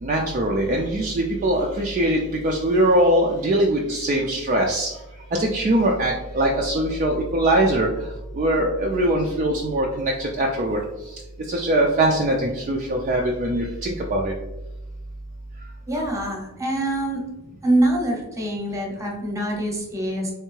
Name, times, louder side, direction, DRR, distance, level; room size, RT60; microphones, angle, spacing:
voice 1, 0.0-4.9 5.3-8.1 8.3-10.8 11.5-14.3, right 1 dB, 35° right, 0 dB, 0.4 m, -22 dB
voice 2, 15.9-17.2 17.6-20.3, right 1 dB, 15° right, 0 dB, 0.8 m, -24 dB
3.4 x 3.1 x 3.1 m, 1.0 s
head